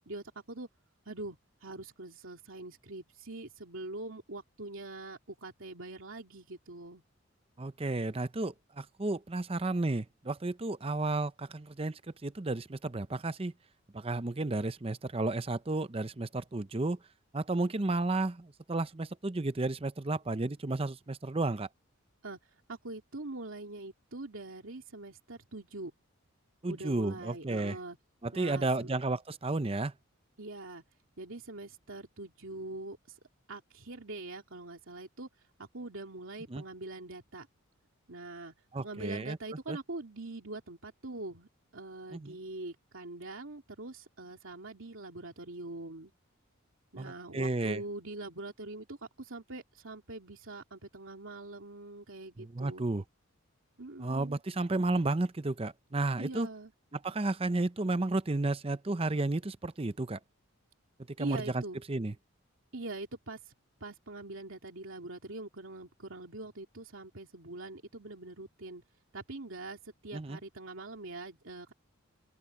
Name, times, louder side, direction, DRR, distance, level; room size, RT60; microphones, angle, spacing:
voice 1, 0.1-0.7 1.1-7.0 17.7-18.0 22.2-22.4 22.7-25.9 26.7-28.0 28.3-28.9 30.4-30.8 31.2-33.2 33.5-35.3 35.6-37.5 38.1-46.1 46.9-52.8 53.8-54.4 56.2-56.7 61.2-61.8 62.7-63.5 63.8-68.8 69.1-71.7, right 2 dB, 65° right, 2.8 m, -43 dB
voice 2, 7.6-13.5 13.9-17.0 17.3-21.7 26.6-27.8 28.2-29.9 36.5-36.6 38.7-39.4 39.7-39.8 42.1-42.4 47.0-47.8 52.4-53.0 54.0-56.5 56.9-60.2 61.2-61.6 61.9-62.1 70.1-70.4, right 2 dB, 25° right, 0.6 m, -32 dB
open air
head